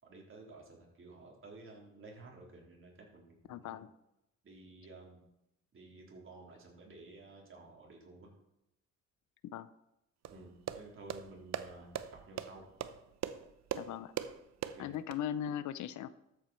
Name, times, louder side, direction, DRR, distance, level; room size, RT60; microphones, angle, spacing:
voice 1, 0.0-3.9 4.4-5.3 5.7-8.3 10.3-11.9 12.3-12.7 14.7-14.9, right 3 dB, 45° right, -1 dB, 3.9 m, -53 dB
voice 2, 3.5-3.9 9.5-9.7 13.7-14.1 14.8-16.1, left 10 dB, 75° left, 16 dB, 0.7 m, -38 dB
sound 1, 10.2-15.2, right 10 dB, 60° right, 0.8 m, -41 dB
13.0 x 8.1 x 4.5 m, 0.85 s
cardioid pair, 90°, 30 cm